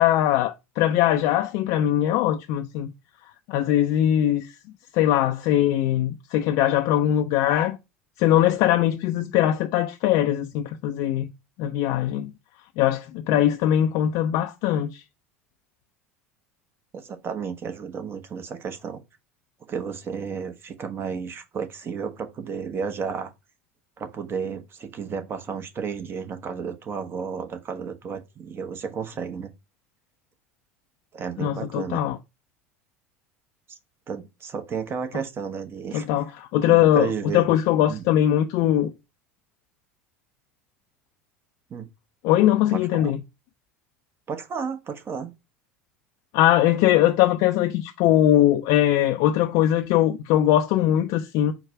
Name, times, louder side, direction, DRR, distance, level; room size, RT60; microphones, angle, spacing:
voice 1, 0.0-2.9 3.5-4.5 4.9-7.8 8.2-11.3 11.6-12.3 12.8-15.0 31.4-32.2 35.9-38.9 42.2-43.2 46.3-51.5, left 12 dB, 55° left, 0.4 m, -21 dB
voice 2, 16.9-19.0 19.7-23.3 24.0-29.5 31.1-32.0 33.7-33.8 34.1-36.1 36.6-37.5 37.9-38.0 41.7-41.9 42.7-43.1 44.3-45.3, right 6 dB, 35° right, 0.9 m, -32 dB
4.6 x 2.2 x 4.7 m
hypercardioid pair, 75°, 7 cm